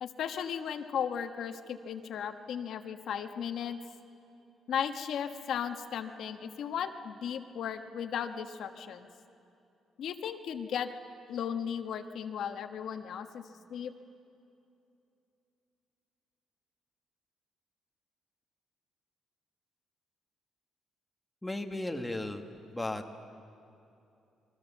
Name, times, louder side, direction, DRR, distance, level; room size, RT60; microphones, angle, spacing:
voice 1, 0.0-3.8 4.7-9.1 10.0-10.9 11.3-13.4 13.7-13.9, left 8 dB, 60° left, 7 dB, 1.2 m, -36 dB
voice 2, 21.4-22.4 22.7-23.1, left 2 dB, 5° left, 4 dB, 1.3 m, -35 dB
29.5 x 22.5 x 7.2 m, 2.7 s
cardioid pair, 160°, 0 cm